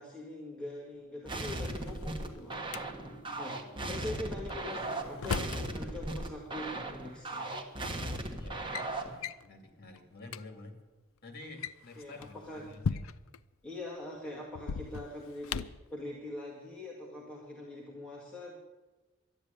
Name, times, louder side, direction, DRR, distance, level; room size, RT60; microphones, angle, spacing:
voice 1, 0.0-2.6 3.4-3.6 3.9-7.6 12.0-12.7 13.6-18.6, left 1 dB, 5° left, -4 dB, 2.0 m, -43 dB
sound 1, 0.9-10.9, right 2 dB, 30° left, 2.2 m, -58 dB
sound 2, 1.3-9.2, right 2 dB, 25° right, 1.4 m, -37 dB
Drawer open or close, 1.5-2.8 4.5-5.7 6.9-7.0 7.9-8.1 8.4-8.9 9.2-9.5 10.0-10.1 10.2-10.4 11.4-13.4 14.5-15.9, left 6 dB, 75° left, 0.5 m, -38 dB
voice 2, 8.1-10.8 11.2-13.0, left 2 dB, 50° left, 5 dB, 2.5 m, -50 dB
12.0 x 10.5 x 9.0 m, 1.1 s
head